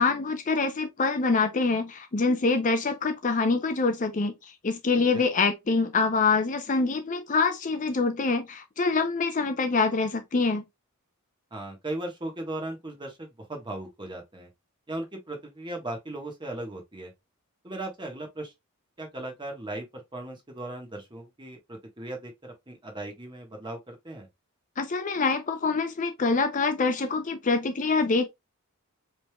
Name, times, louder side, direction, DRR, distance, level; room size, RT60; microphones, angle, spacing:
voice 1, 0.0-10.6 24.8-28.3, left 4 dB, 35° left, 0.5 m, -25 dB
voice 2, 11.5-14.5 14.9-17.1 17.6-18.5 19.0-24.3, right 1 dB, 20° right, 1.3 m, -37 dB
5.1 x 3.3 x 2.3 m
head